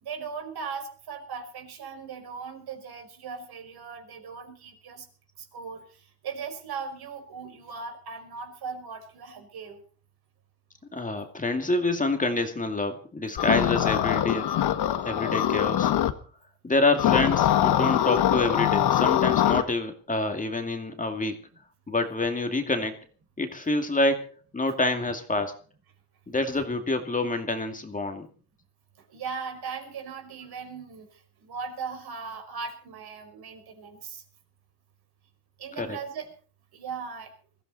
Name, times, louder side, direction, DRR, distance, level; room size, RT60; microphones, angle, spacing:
voice 1, 0.0-5.1 5.4-9.8 29.1-34.2 35.6-36.3 36.7-37.3, right 5 dB, 55° right, 5 dB, 5.6 m, -38 dB
voice 2, 10.9-14.5 15.0-15.9 16.6-21.4 21.9-23.0 23.4-25.5 26.3-28.3 35.8-36.0, left 2 dB, 15° left, 5 dB, 2.4 m, -27 dB
sound 1, 13.4-16.1 17.0-19.6, left 11 dB, 60° left, 1.7 m, -23 dB
21.5 x 15.0 x 4.1 m, 0.41 s
cardioid pair, 100°, 45 cm